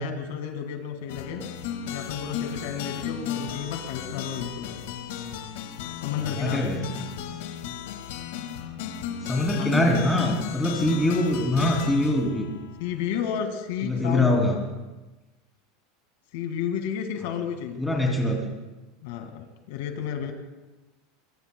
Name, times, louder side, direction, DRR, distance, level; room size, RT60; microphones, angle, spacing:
voice 1, 0.0-1.4 1.9-4.8 6.0-6.7 9.5-9.9 10.9-11.0 12.8-14.4 16.3-17.9 19.0-20.3, left 8 dB, 65° left, 5 dB, 1.8 m, -32 dB
sound 1, 1.1-13.4, left 8 dB, 80° left, 1.8 m, -35 dB
voice 2, 6.2-6.9 9.3-12.5 13.8-14.6 17.8-18.4, left 1 dB, 5° left, -1 dB, 2.7 m, -23 dB
23.5 x 23.0 x 2.2 m, 1.1 s
supercardioid pair, 170°, 0 cm